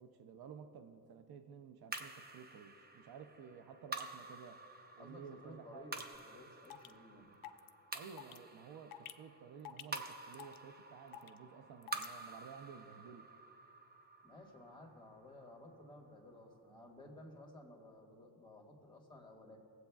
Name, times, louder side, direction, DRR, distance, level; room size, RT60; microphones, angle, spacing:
voice 1, 0.0-4.6 4.9-6.0 7.9-13.3, right 6 dB, 75° right, 0.6 m, -54 dB
sound 1, 1.9-16.4, right 3 dB, 25° right, 0.7 m, -50 dB
voice 2, 5.0-7.3 14.2-19.6, left 1 dB, 10° left, 1.6 m, -55 dB
sound 2, 6.2-6.3 6.6-6.9 7.4-7.7 8.2-8.4 8.9-9.1 9.6-10.0 10.3-10.6 11.1-11.4 11.8-12.1, left 12 dB, 60° left, 0.5 m, -49 dB
19.0 x 7.8 x 2.3 m
cardioid pair, 90°, 38 cm